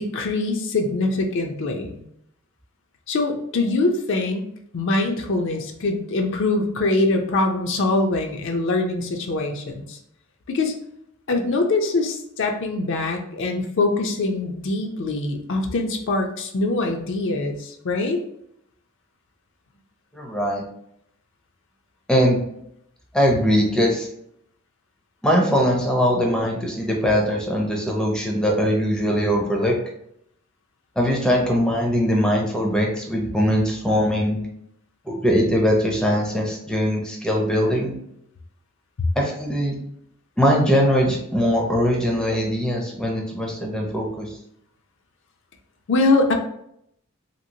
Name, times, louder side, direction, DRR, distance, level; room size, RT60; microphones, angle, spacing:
voice 1, 0.0-2.0 3.1-10.0 10.5-10.7 11.3-18.2 45.9-46.3, left 2 dB, 60° left, 4 dB, 0.4 m, -23 dB
voice 2, 20.1-20.6 22.1-22.4 23.1-24.1 25.2-29.8 31.0-34.4 35.1-37.9 39.2-39.7 40.4-44.3, equal, 5° left, -1 dB, 0.5 m, -21 dB
2.9 x 2.7 x 2.7 m, 0.73 s
head